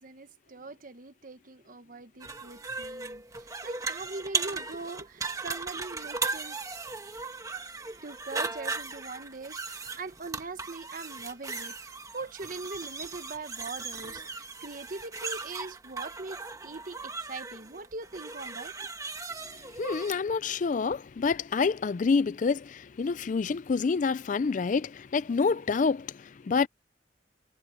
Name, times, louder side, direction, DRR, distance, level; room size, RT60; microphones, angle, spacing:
voice 1, 0.0-6.6 8.0-18.9, right 3 dB, 50° right, 1.2 m, -41 dB
sound 1, 2.2-20.1, right 4 dB, 20° right, 1.6 m, -37 dB
voice 2, 19.8-26.7, left 5 dB, 45° left, 0.4 m, -27 dB
head